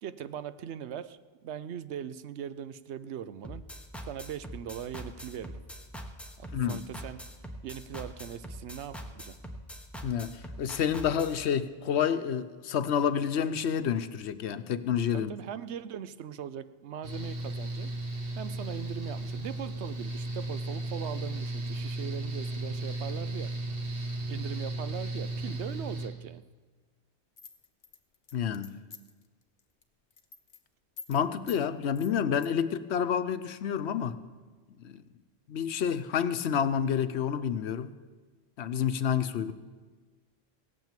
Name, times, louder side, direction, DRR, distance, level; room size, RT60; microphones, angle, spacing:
voice 1, 0.0-3.6 4.0-5.6 6.4-7.2 7.6-9.4 15.1-17.9 18.4-23.5 24.3-26.4, right 9 dB, 85° right, 14 dB, 0.9 m, -40 dB
sound 1, 3.4-11.4, equal, ahead, 1.0 m, -42 dB
voice 2, 10.0-15.3 28.3-28.7 31.1-34.2 34.8-35.0 35.5-37.9 38.6-39.5, left 8 dB, 85° left, 11 dB, 1.0 m, -29 dB
Mechanical fan, 17.0-26.1, right 2 dB, 60° right, 1.9 m, -35 dB
sound 2, 27.4-29.2 29.6-29.8 30.1-30.6 31.0-31.2 31.5-31.6 32.0-32.5, left 5 dB, 50° left, 1.0 m, -47 dB
17.0 x 9.1 x 7.4 m, 1.4 s
omnidirectional pair, 1.1 m